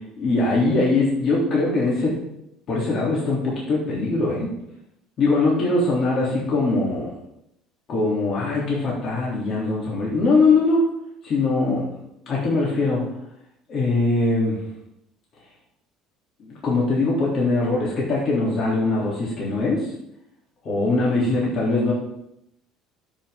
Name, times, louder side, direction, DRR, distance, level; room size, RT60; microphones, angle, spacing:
voice 1, 0.2-2.3 2.7-4.5 5.2-7.1 7.9-10.9 11.2-12.0 12.3-13.0 13.7-14.6 16.4-19.9 20.6-21.9, left 3 dB, 50° left, -5 dB, 3.3 m, -21 dB
12.5 x 6.1 x 3.8 m, 0.81 s
cardioid pair, 110°, 0 cm